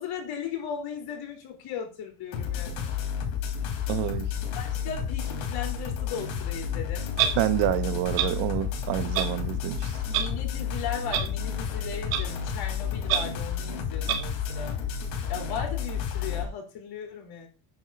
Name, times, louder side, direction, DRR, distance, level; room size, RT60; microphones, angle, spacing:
voice 1, 0.0-2.9 4.5-7.0 10.0-14.8 15.3-17.5, left 8 dB, 50° left, 3.8 m, -37 dB
sound 1, 2.3-16.4, left 7 dB, 70° left, 3.4 m, -31 dB
voice 2, 3.9-4.3 7.3-9.9, right 14 dB, 65° right, 1.0 m, -28 dB
Clock, 7.2-7.3 8.2-8.3 9.1-9.3 10.1-10.2 11.1-11.2 12.1-12.2 13.1-13.2 14.1-14.2, right 10 dB, 90° right, 2.1 m, -24 dB
9.2 x 4.2 x 7.0 m
cardioid pair, 170°, 48 cm